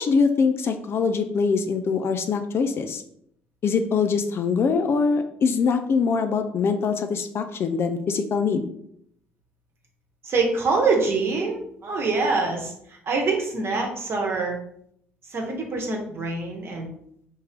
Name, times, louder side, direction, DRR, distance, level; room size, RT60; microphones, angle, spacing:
voice 1, 0.0-3.0 3.6-8.7, left 5 dB, 40° left, 7 dB, 0.4 m, -23 dB
voice 2, 10.2-14.6 15.3-16.9, right 3 dB, 40° right, 1 dB, 1.0 m, -25 dB
3.5 x 2.8 x 3.4 m, 0.70 s
figure-of-eight pair, 50°, 6 cm